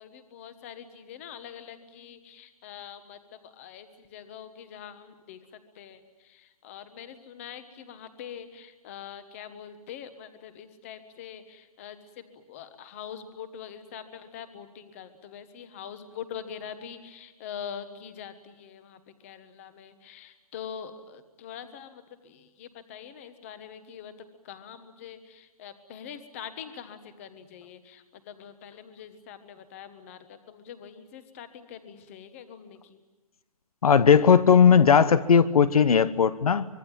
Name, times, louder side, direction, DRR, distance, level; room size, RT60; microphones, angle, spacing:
voice 1, 0.0-24.1 24.4-33.0, left 8 dB, 20° left, 11 dB, 1.3 m, -44 dB
voice 2, 33.8-36.7, left 7 dB, 70° left, 16 dB, 1.2 m, -18 dB
24.5 x 22.5 x 8.9 m, 1.1 s
hypercardioid pair, 175°, 19 cm